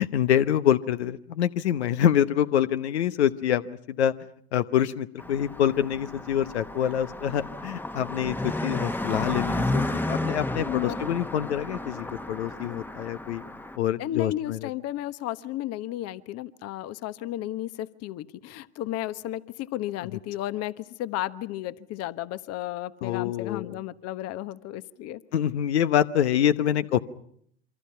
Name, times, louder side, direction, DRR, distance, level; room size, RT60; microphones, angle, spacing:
voice 1, 0.0-4.1 4.5-13.4 13.8-14.7 23.0-23.8 25.3-27.0, left 10 dB, 75° left, 12 dB, 1.0 m, -26 dB
Car passing by, 5.2-13.8, left 1 dB, 5° left, 1.1 m, -32 dB
voice 2, 10.6-11.0 14.0-25.2, left 14 dB, 50° left, 15 dB, 1.2 m, -33 dB
27.5 x 25.0 x 5.7 m, 0.66 s
hypercardioid pair, 80°, 33 cm